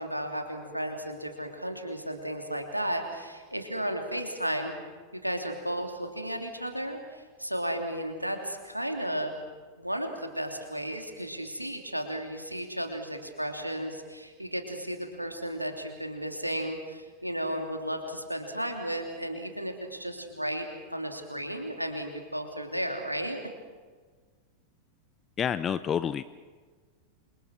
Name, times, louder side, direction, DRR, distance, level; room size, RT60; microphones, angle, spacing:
voice 1, 0.0-4.7 5.1-9.3 9.8-23.4, right 1 dB, 90° right, 4 dB, 3.1 m, -34 dB
voice 2, 25.4-26.2, left 8 dB, 25° left, 15 dB, 0.7 m, -28 dB
28.5 x 25.0 x 6.2 m, 1.5 s
figure-of-eight pair, 90°, 0 cm